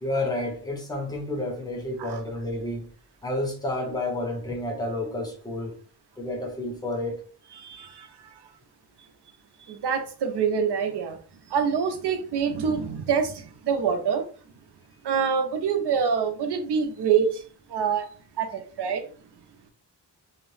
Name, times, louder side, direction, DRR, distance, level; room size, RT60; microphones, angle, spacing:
voice 1, 0.0-2.9 3.2-5.8 6.2-7.2, left 1 dB, 10° left, 0.6 m, -30 dB
voice 2, 7.6-8.1 9.7-11.2 11.5-14.2 15.0-17.4 17.7-18.1 18.4-19.0, right 6 dB, 65° right, 0.6 m, -25 dB
2.7 x 2.0 x 3.1 m
wide cardioid pair, 160°, 43 cm